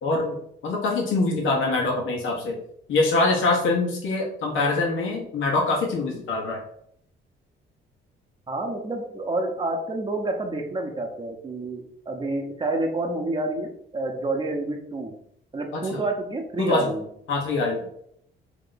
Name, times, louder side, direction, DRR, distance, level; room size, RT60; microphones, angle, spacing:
voice 1, 0.0-0.4 0.6-2.6 2.9-6.6 15.7-16.0 16.6-16.9 17.3-17.8, left 3 dB, 80° left, -1 dB, 1.2 m, -24 dB
voice 2, 8.5-15.2 15.5-17.1, right 2 dB, 25° right, 3 dB, 0.8 m, -28 dB
3.2 x 2.9 x 3.9 m, 0.69 s
cardioid pair, 90°, 20 cm